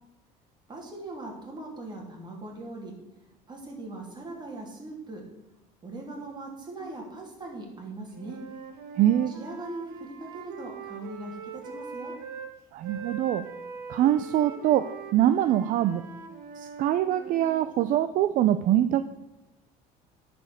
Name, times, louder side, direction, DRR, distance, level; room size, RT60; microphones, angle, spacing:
voice 1, 0.7-2.9 3.5-5.2 5.8-8.4 9.3-12.1, right 2 dB, 25° right, 0 dB, 3.1 m, -40 dB
Wind instrument woodwind instrument, 8.1-12.5 12.8-17.6, right 5 dB, 80° right, 1.4 m, -42 dB
voice 2, 9.0-9.3 12.7-13.4 13.9-16.0 16.6-19.0, right 12 dB, 55° right, 11 dB, 0.5 m, -24 dB
10.5 x 5.2 x 6.5 m, 0.99 s
cardioid pair, 120°, 16 cm